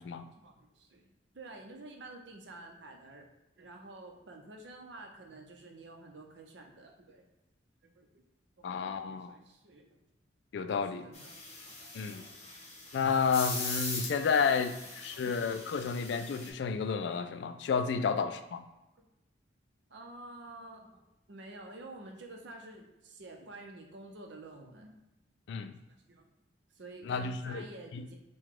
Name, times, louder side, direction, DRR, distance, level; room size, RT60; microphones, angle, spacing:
voice 1, 0.4-7.2 7.8-8.1 8.6-10.0 10.8-12.3 15.1-15.4 18.0-18.1 19.9-21.0 21.3-25.0 26.1-26.2 26.7-28.2, right 2 dB, 70° right, 2 dB, 0.7 m, -50 dB
voice 2, 8.6-9.4 10.5-11.1 11.9-12.2 12.9-18.6 25.5-25.8 27.0-27.6 27.9-28.1, left 5 dB, 65° left, 9 dB, 0.3 m, -31 dB
sound 1, 11.1-16.5, left 3 dB, 35° left, 0.9 m, -41 dB
4.7 x 2.2 x 3.7 m, 0.97 s
head